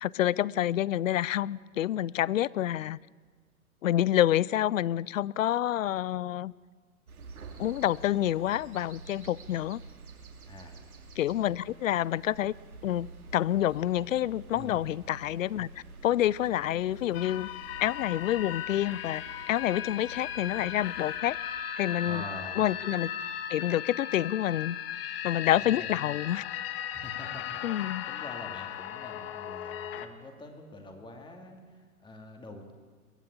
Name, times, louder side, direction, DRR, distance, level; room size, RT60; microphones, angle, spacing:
voice 1, 0.0-3.0 3.8-6.5 7.6-9.8 11.2-12.5 12.8-15.7 16.0-17.5 17.8-21.4 21.8-22.2 22.6-23.1 23.5-24.8 25.2-26.4 27.6-28.0, left 12 dB, 60° left, 23 dB, 0.6 m, -28 dB
sound 1, 7.1-21.2, right 3 dB, 75° right, 3.0 m, -49 dB
voice 2, 10.4-10.8 14.5-14.8 22.1-22.6 25.5-26.0 26.9-32.7, left 2 dB, 10° left, 3 dB, 2.6 m, -45 dB
sound 2, 17.1-30.1, left 10 dB, 40° left, 1.5 m, -37 dB
22.5 x 15.5 x 8.5 m, 1.5 s
hypercardioid pair, 125°, 44 cm